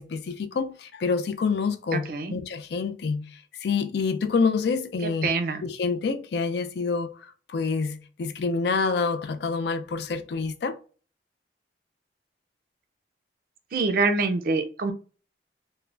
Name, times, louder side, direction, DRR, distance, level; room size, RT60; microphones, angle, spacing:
voice 1, 0.0-3.3 3.6-5.3 5.6-10.8, left 4 dB, 60° left, 0.4 m, -27 dB
voice 2, 1.9-2.4 5.0-5.6 13.7-14.9, right 3 dB, 50° right, 0.4 m, -25 dB
3.3 x 2.1 x 2.5 m
head